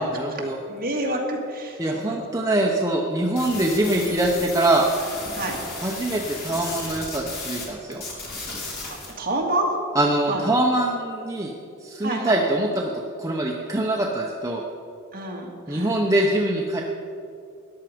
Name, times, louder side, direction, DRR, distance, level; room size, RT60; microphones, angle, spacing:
voice 1, 0.0-0.6 1.8-4.9 5.8-8.0 9.9-11.5 11.8-12.9 13.2-14.6 15.7-16.8, right 1 dB, 15° right, -1 dB, 0.8 m, -23 dB
voice 2, 0.7-2.2 3.9-4.2 5.3-5.6 9.2-9.7 10.3-10.4 12.0-12.4 15.1-15.9, right 1 dB, 45° right, -1 dB, 2.1 m, -28 dB
sound 1, 3.4-7.7 7.9-9.1, left 2 dB, 45° left, 3.2 m, -34 dB
13.5 x 10.5 x 5.1 m, 2.5 s
head